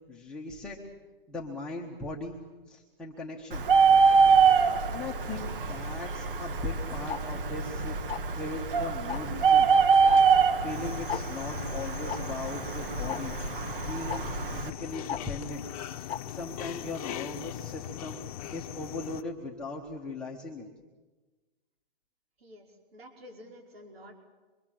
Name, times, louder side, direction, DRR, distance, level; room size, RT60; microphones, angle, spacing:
voice 1, 0.1-0.8 1.3-2.4 2.7-3.6 4.9-8.0 8.3-9.7 10.6-13.3 13.9-15.6 15.9-18.2 18.5-20.7, left 3 dB, 5° left, -4 dB, 1.1 m, -39 dB
Bird, 3.5-14.7, right 5 dB, 60° right, 1.8 m, -25 dB
Tick-tock, 7.1-7.2 8.1-8.4 9.1-9.4 10.1-10.2 10.5-10.6 11.1-11.2 12.1-12.2 13.1-13.2 14.1-14.2 15.1-15.2 16.1-16.2, left 9 dB, 80° left, 1.1 m, -34 dB
sound 1, 10.7-19.2, left 11 dB, 40° left, 1.0 m, -40 dB
voice 2, 22.4-24.2, equal, 80° right, 2 dB, 5.4 m, -50 dB
25.5 x 23.5 x 7.6 m, 1.3 s
hypercardioid pair, 165°, 30 cm